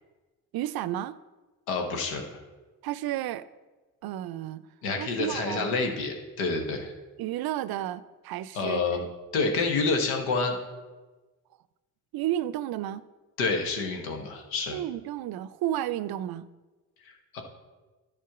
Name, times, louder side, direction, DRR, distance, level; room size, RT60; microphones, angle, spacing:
voice 1, 0.5-1.2 2.8-3.5 4.0-4.7 5.0-5.7 7.2-9.0 12.1-13.0 14.7-16.5, right 13 dB, 60° right, 17 dB, 0.5 m, -32 dB
voice 2, 1.7-2.2 4.8-6.9 8.5-9.0 9.3-10.6 13.4-14.8 17.0-17.4, left 3 dB, 85° left, 3 dB, 1.2 m, -28 dB
11.0 x 4.4 x 5.9 m, 1.2 s
hypercardioid pair, 45°, 42 cm